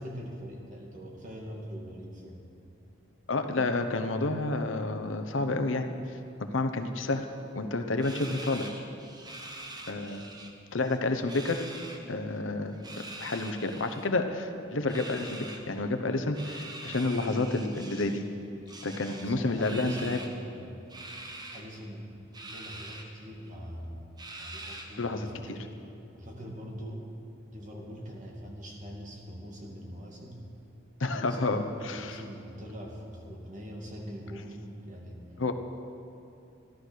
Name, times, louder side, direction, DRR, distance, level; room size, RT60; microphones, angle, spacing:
voice 1, 0.0-2.4 19.0-20.9 21.5-22.1 22.4-24.1 24.4-25.7 26.1-27.1 27.5-30.4 31.1-35.2, equal, 40° right, -1 dB, 2.4 m, -42 dB
voice 2, 3.3-5.9 6.4-7.2 7.5-8.7 9.9-10.2 10.7-11.6 12.1-12.8 13.2-18.2 18.8-20.2 25.0-25.3 31.0-32.1 35.4-35.5, left 2 dB, 85° left, 6 dB, 0.9 m, -30 dB
sound 1, 8.0-10.5 10.8-12.0 12.7-14.1 14.9-15.6 16.3-18.2 18.7-20.4 20.9-21.6 22.3-23.0 23.5-23.6 24.2-25.1, right 2 dB, 20° right, 1.2 m, -44 dB
14.5 x 12.0 x 6.4 m, 2.7 s
head